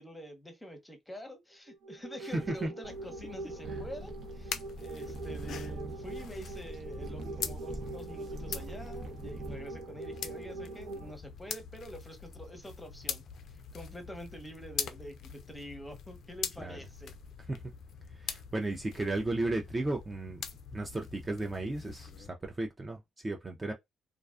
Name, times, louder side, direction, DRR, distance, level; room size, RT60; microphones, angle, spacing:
voice 1, 0.0-13.2 13.5-17.1, equal, 10° left, 0.8 m, -46 dB
sound 1, 1.7-11.1, right 2 dB, 90° right, 0.8 m, -43 dB
voice 2, 2.2-2.7 3.7-3.8 7.2-7.3 16.6-16.8 17.5-17.6 18.2-20.4 20.7-23.7, right 2 dB, 20° right, 0.4 m, -34 dB
sound 2, 2.8-22.3, left 7 dB, 70° left, 0.3 m, -44 dB
sound 3, 3.6-9.8, right 2 dB, 55° right, 0.7 m, -44 dB
2.4 x 2.3 x 2.4 m
cardioid pair, 90°, 0 cm